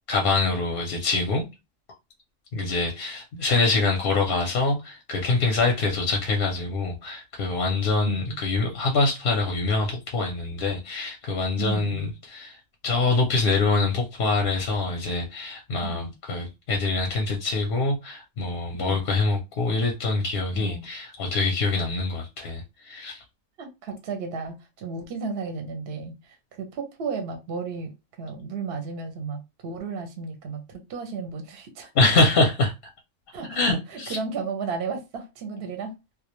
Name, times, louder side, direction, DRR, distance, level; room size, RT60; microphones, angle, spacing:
voice 1, 0.1-1.5 2.5-12.6 12.8-23.2 32.0-32.7 33.6-34.2, left 3 dB, 60° left, 0.6 m, -25 dB
voice 2, 8.1-8.4 11.6-12.0 15.8-16.1 18.8-19.0 20.5-20.8 23.6-31.9 33.3-35.9, right 5 dB, 60° right, 0.7 m, -34 dB
2.3 x 2.1 x 2.9 m
omnidirectional pair, 1.3 m